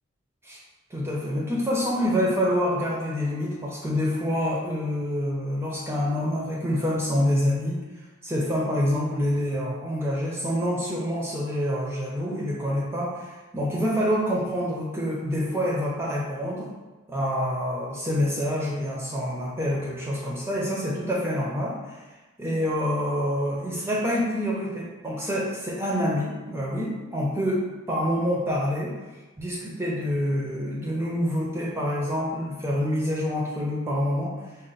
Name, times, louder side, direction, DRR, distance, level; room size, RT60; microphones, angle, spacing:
voice 1, 0.9-7.8 8.2-16.7 17.1-22.0 22.4-28.9 29.4-34.3, equal, 10° right, -4 dB, 0.5 m, -27 dB
4.0 x 2.0 x 3.9 m, 1.2 s
head